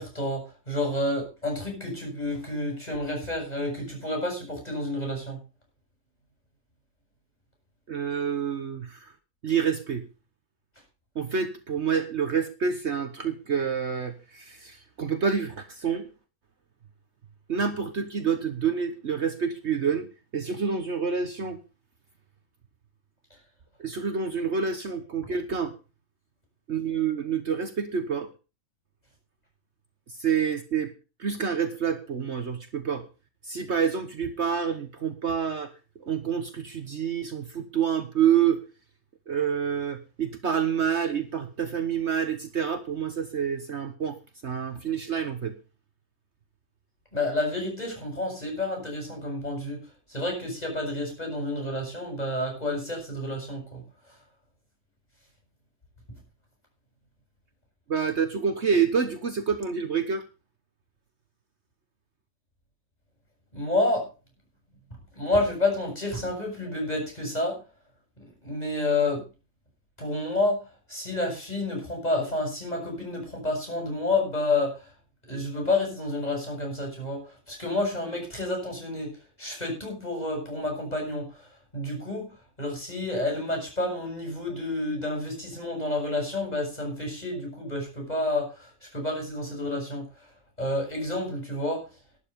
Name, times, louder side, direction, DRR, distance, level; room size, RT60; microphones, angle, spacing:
voice 1, 0.0-5.4 47.1-49.8 50.1-53.8 63.5-64.1 65.2-67.6 68.2-69.3 70.0-70.6 70.9-74.8 75.3-79.1 79.4-81.5 81.7-90.1 90.6-91.9, left 2 dB, 30° left, 1 dB, 7.6 m, -29 dB
voice 2, 7.9-9.1 9.4-10.0 11.1-16.1 17.5-20.1 20.3-21.6 23.8-25.7 26.7-28.3 30.2-30.9 31.2-33.0 33.4-35.7 36.0-38.6 39.3-44.2 44.4-45.5 57.9-60.2, right 7 dB, 55° right, 8 dB, 1.4 m, -27 dB
12.0 x 10.5 x 5.3 m, 0.32 s
omnidirectional pair, 1.5 m